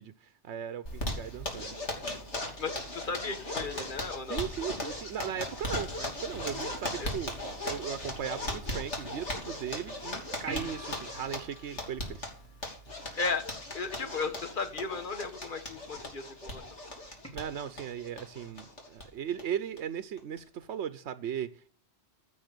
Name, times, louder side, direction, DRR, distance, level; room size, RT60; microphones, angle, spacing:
voice 1, 0.0-1.7 4.2-7.3 7.6-12.3 17.3-21.7, right 9 dB, 80° right, 1.0 m, -37 dB
Zipper (clothing), 0.9-19.0 19.4-19.5 19.8-19.9 20.2-20.6, left 1 dB, 80° left, 3.3 m, -38 dB
voice 2, 2.6-4.4 7.0-7.1 13.1-13.5 13.7-16.7, left 4 dB, 45° left, 1.7 m, -35 dB
sound 1, 10.5-13.2 17.2-17.3, equal, 10° left, 3.0 m, -46 dB
15.5 x 6.3 x 6.7 m
omnidirectional pair, 1.2 m